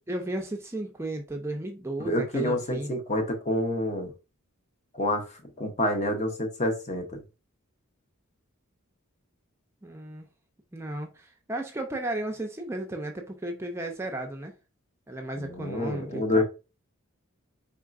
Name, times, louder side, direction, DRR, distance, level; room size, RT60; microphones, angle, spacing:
voice 1, 0.1-3.0 9.8-10.3 10.7-14.5 15.1-16.4, right 1 dB, 10° right, 0.4 m, -34 dB
voice 2, 2.0-4.1 4.9-5.2 5.6-7.2 15.4-16.4, left 1 dB, 35° left, 0.7 m, -28 dB
3.9 x 3.6 x 2.4 m
head